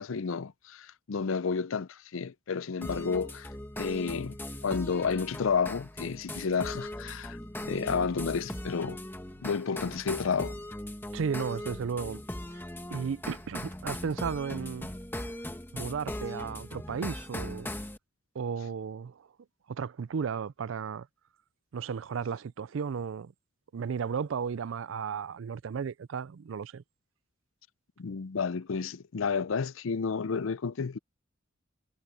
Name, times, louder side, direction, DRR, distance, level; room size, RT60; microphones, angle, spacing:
voice 1, 0.0-3.5 3.8-4.4 4.6-7.4 7.6-9.0 9.4-10.5 28.0-31.0, left 5 dB, 85° left, 0.5 m, -31 dB
sound 1, 2.8-18.0, left 1 dB, 10° left, 1.6 m, -39 dB
voice 2, 11.1-12.2 12.9-14.9 15.7-17.7 18.3-19.3 19.7-21.1 21.7-23.3 23.7-26.8, right 6 dB, 75° right, 0.4 m, -34 dB
head